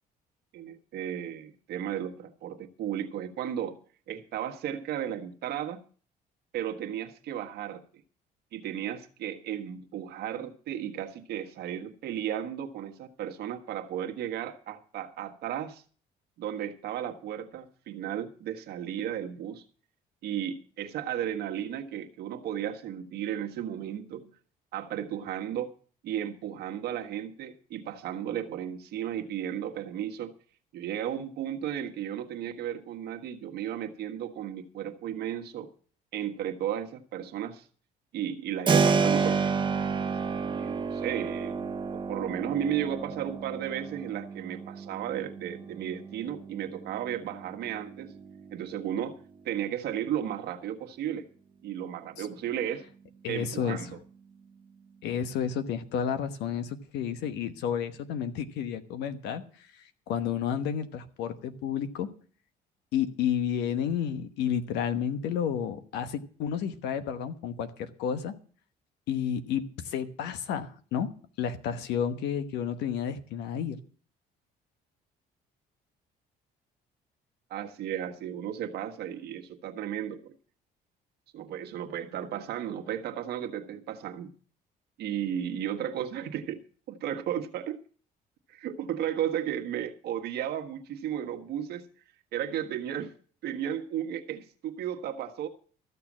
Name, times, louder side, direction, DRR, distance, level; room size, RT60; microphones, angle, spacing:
voice 1, 0.5-3.8 4.1-5.8 6.5-7.8 8.5-15.8 16.4-19.6 20.2-24.3 24.7-25.7 26.0-30.3 30.7-35.7 36.1-37.7 38.1-39.5 40.3-48.1 48.5-49.2 49.4-51.2 51.6-52.8 53.3-54.0 77.5-80.3 81.3-84.3 85.0-86.6 86.9-87.8 88.5-91.8 92.3-93.1 93.4-95.5, right 10 dB, 70° right, 4 dB, 1.5 m, -34 dB
Keyboard (musical), 38.7-49.3, right 5 dB, 30° right, 1.2 m, -31 dB
voice 2, 53.2-53.9 55.0-62.1 62.9-68.4 69.1-71.1 71.4-73.8, left 8 dB, 85° left, 11 dB, 1.2 m, -31 dB
14.0 x 6.8 x 7.4 m, 0.43 s
cardioid pair, 110°, 17 cm